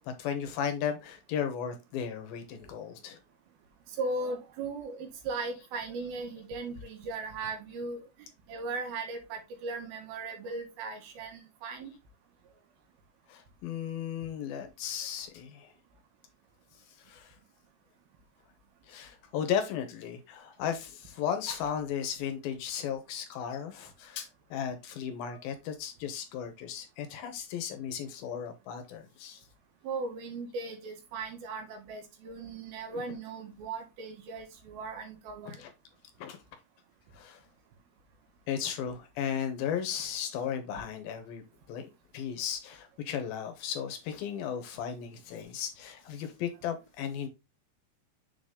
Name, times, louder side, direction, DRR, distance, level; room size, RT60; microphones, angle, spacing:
voice 1, 0.2-3.2 13.3-15.7 17.0-17.4 18.9-29.4 32.9-33.0 35.5-35.7 36.2-36.4 37.1-37.4 38.5-41.4 41.7-47.3, left 8 dB, 75° left, 2.7 m, -35 dB
voice 2, 4.0-8.0 8.5-11.9 29.8-35.6, right 3 dB, 75° right, 3.2 m, -37 dB
7.1 x 3.9 x 3.7 m
omnidirectional pair, 4.5 m